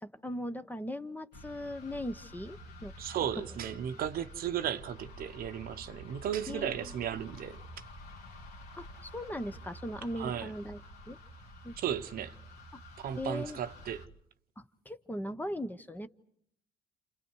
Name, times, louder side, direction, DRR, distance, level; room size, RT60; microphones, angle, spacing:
voice 1, 0.0-2.9 6.5-6.8 8.8-10.8 11.1-11.2 11.6-11.8 13.2-13.6 14.6-16.1, left 1 dB, 10° left, 1.0 m, -39 dB
sound 1, 1.3-14.1, equal, 75° left, 3.0 m, -49 dB
voice 2, 3.0-7.6 10.1-10.5 11.8-12.4 13.0-14.1, right 9 dB, 60° right, 1.0 m, -35 dB
29.0 x 28.5 x 4.7 m
cardioid pair, 110°, 17 cm